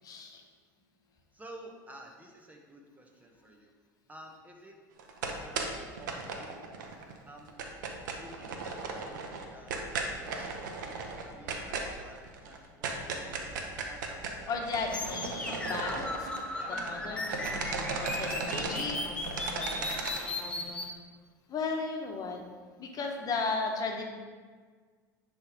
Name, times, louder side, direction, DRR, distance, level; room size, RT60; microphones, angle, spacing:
voice 1, 0.0-0.4 14.5-16.1 16.7-19.0 19.5-19.9 21.5-22.4 22.8-24.0, left 4 dB, 40° left, 2 dB, 1.4 m, -35 dB
voice 2, 1.3-3.7 4.1-4.8 5.2-6.6 7.2-7.7 8.1-9.9 10.2-14.6 15.4-18.8 19.7-20.2, right 1 dB, 15° right, 1 dB, 1.5 m, -52 dB
sound 1, 5.0-7.1 7.4-17.0 17.2-20.2, right 4 dB, 75° right, 1.0 m, -36 dB
sound 2, 14.9-20.9, left 2 dB, 10° left, 1.1 m, -36 dB
10.0 x 3.5 x 5.3 m, 1.5 s
hypercardioid pair, 80°, 10 cm